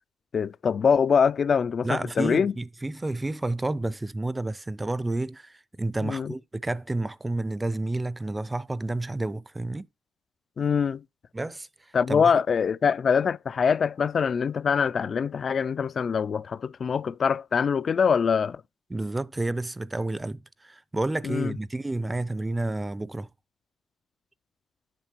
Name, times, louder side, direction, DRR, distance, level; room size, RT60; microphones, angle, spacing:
voice 1, 0.3-2.5 6.0-6.3 10.6-11.0 11.9-18.6 21.2-21.6, left 6 dB, 45° left, 0.3 m, -24 dB
voice 2, 1.8-9.9 11.3-11.7 12.1-12.4 18.9-23.3, right 2 dB, 15° right, 0.5 m, -30 dB
9.1 x 6.3 x 2.9 m
cardioid pair, 90°, 0 cm